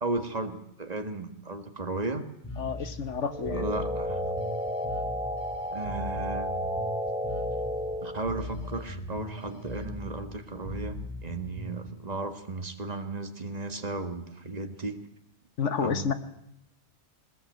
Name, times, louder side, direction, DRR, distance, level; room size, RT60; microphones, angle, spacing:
voice 1, 0.0-2.3 3.5-4.2 5.7-6.5 8.0-15.0 15.8-16.1, right 2 dB, 35° right, 7 dB, 1.8 m, -35 dB
Bass guitar, 2.4-11.9, left 1 dB, 15° left, 3.6 m, -39 dB
voice 2, 2.6-3.7 15.6-16.1, left 6 dB, 80° left, 11 dB, 1.5 m, -30 dB
sound 1, 3.3-8.2, equal, 5° right, 1.0 m, -32 dB
sound 2, 4.4-4.9 5.4-5.9 8.4-8.9 9.4-9.9, left 6 dB, 65° left, 2.2 m, -51 dB
20.5 x 20.0 x 8.0 m, 0.79 s
omnidirectional pair, 1.2 m